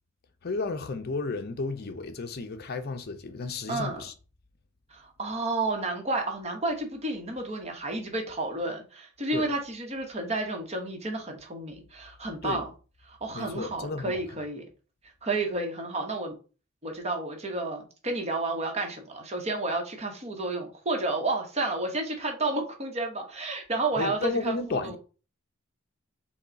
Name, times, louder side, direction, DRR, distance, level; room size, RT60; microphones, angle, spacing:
voice 1, 0.4-4.1 9.3-9.5 12.4-12.6 13.3-14.2 24.0-25.0, left 3 dB, 50° left, 0.6 m, -32 dB
voice 2, 3.7-4.0 4.9-12.7 13.1-14.6 15.2-16.3 16.8-25.0, right 2 dB, 30° right, 1.1 m, -31 dB
5.7 x 2.3 x 4.0 m
head